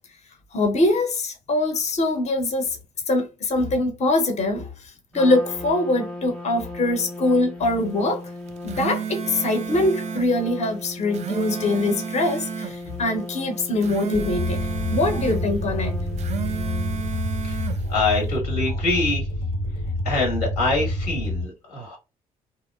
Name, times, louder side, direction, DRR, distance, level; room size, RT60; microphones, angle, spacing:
voice 1, 0.5-2.8 3.1-4.7 5.1-8.2 8.6-15.9, left 2 dB, 35° left, 0.8 m, -23 dB
Trumpet, 5.1-17.3, left 2 dB, 5° left, 0.8 m, -37 dB
sound 1, 8.5-10.3 11.0-12.8 13.6-15.4 16.1-17.8, right 8 dB, 35° right, 0.4 m, -32 dB
sound 2, 14.1-21.4, left 1 dB, 70° left, 0.8 m, -27 dB
voice 2, 17.4-19.3 20.0-22.0, left 2 dB, 85° left, 1.2 m, -25 dB
2.8 x 2.0 x 2.3 m
hypercardioid pair, 50°, 19 cm